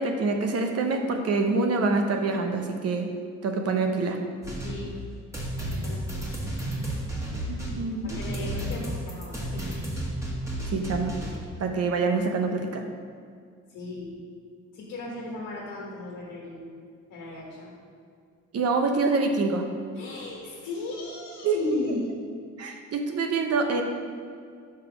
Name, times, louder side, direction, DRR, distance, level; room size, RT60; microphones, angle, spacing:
voice 1, 0.0-3.1 3.4-4.2 7.5-8.2 10.7-11.1 11.6-12.8 18.5-19.6 21.4-21.6 22.6-23.8, right 3 dB, 55° right, 4 dB, 0.8 m, -26 dB
sound 1, 4.4-11.4, right 1 dB, 10° right, 1.4 m, -32 dB
voice 2, 4.6-4.9 5.6-6.3 8.0-9.8 13.7-14.1 14.7-16.7 17.1-17.7 19.9-22.1, left 2 dB, 80° left, -4 dB, 1.3 m, -36 dB
5.6 x 3.6 x 5.9 m, 2.1 s
cardioid pair, 90°, 30 cm